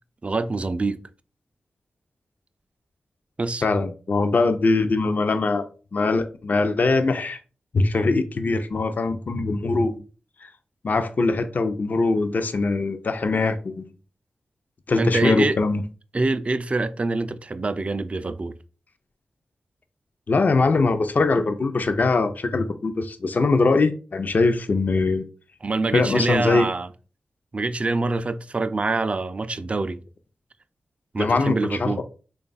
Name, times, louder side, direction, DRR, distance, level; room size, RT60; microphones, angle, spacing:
voice 1, 0.2-1.0 3.4-3.6 15.0-15.6 16.1-18.5 25.6-26.9 27.5-30.0 31.1-32.0, right 3 dB, 35° right, 0.3 m, -25 dB
voice 2, 3.6-5.7 5.9-7.4 7.7-10.0 10.4-10.5 10.8-13.9 14.9-15.8 20.3-25.3 25.9-26.7 31.2-32.0, left 3 dB, 55° left, 0.4 m, -22 dB
3.2 x 2.3 x 3.9 m
cardioid pair, 50°, 4 cm